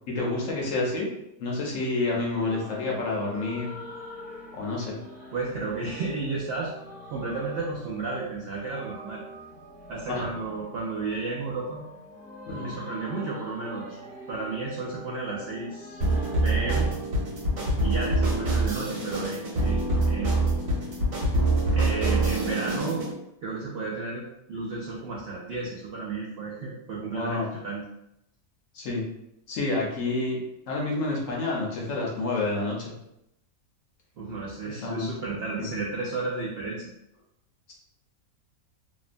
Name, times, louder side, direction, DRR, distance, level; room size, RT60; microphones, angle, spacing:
voice 1, 0.1-1.1 1.4-3.7 4.5-5.0 10.1-10.3 12.5-12.7 27.1-27.5 28.7-29.1 29.5-30.4 30.7-32.9 34.7-35.1 35.6-35.7, left 2 dB, 65° left, -3 dB, 0.9 m, -29 dB
sound 1, 2.4-17.0, equal, 15° right, 0.5 m, -44 dB
voice 2, 5.3-6.7 7.1-9.2 9.9-11.8 12.6-14.0 14.3-16.0 16.4-16.9 17.8-20.3 21.7-23.1 23.4-27.8 34.2-36.9, right 3 dB, 90° right, -4 dB, 0.5 m, -33 dB
sound 2, 16.0-23.1, right 2 dB, 65° right, 1.3 m, -25 dB
2.9 x 2.1 x 2.5 m, 0.83 s
omnidirectional pair, 1.6 m